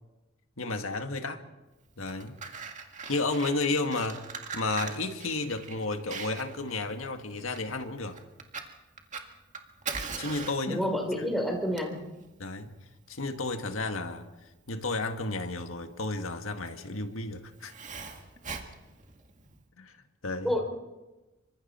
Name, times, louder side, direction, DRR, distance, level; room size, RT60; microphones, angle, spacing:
voice 1, 0.6-1.4 2.0-2.4 3.1-4.3 4.5-8.2 10.2-10.8 11.2-11.3 12.4-12.8 13.1-14.3 14.7-17.7 19.8-20.0 20.2-20.6, left 3 dB, 80° left, 1.8 m, -32 dB
Fire, 1.9-19.6, right 5 dB, 35° right, 1.9 m, -42 dB
voice 2, 10.7-12.1 20.4-20.6, equal, ahead, 3.9 m, -29 dB
26.5 x 24.5 x 4.4 m
head